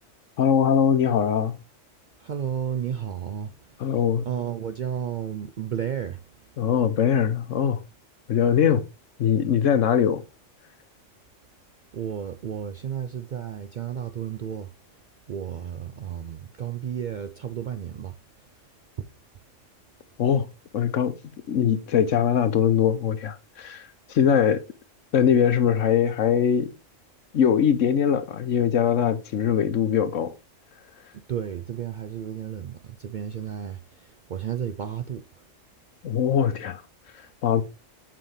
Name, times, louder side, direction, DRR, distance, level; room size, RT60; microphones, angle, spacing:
voice 1, 0.4-1.6 3.8-4.2 6.6-7.8 8.3-8.8 9.2-10.2 20.2-20.5 20.7-21.1 21.5-24.6 25.1-26.7 27.3-30.3 36.0-36.8 37.4-37.6, left 8 dB, 80° left, 1.2 m, -21 dB
voice 2, 2.2-3.5 3.9-4.0 4.2-6.2 11.9-14.7 15.3-18.2 19.0-19.1 31.1-35.4, right 8 dB, 65° right, 0.4 m, -32 dB
7.6 x 5.1 x 3.2 m
omnidirectional pair, 1.3 m